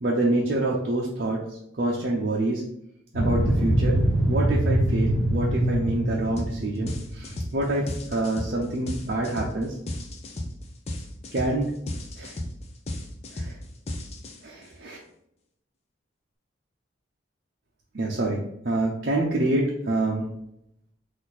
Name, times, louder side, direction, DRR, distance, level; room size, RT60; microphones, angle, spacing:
voice 1, 0.0-1.4 1.8-2.6 3.1-9.8 11.3-11.7 12.2-12.4 13.3-13.5 14.4-15.0 17.9-20.3, right 2 dB, 55° right, -4 dB, 0.6 m, -26 dB
sound 1, 3.1-7.9, right 1 dB, 80° left, 1.1 m, -24 dB
sound 2, 6.4-6.6 6.9-14.6, left 1 dB, 35° left, 0.5 m, -34 dB
4.3 x 2.6 x 4.1 m, 0.76 s
head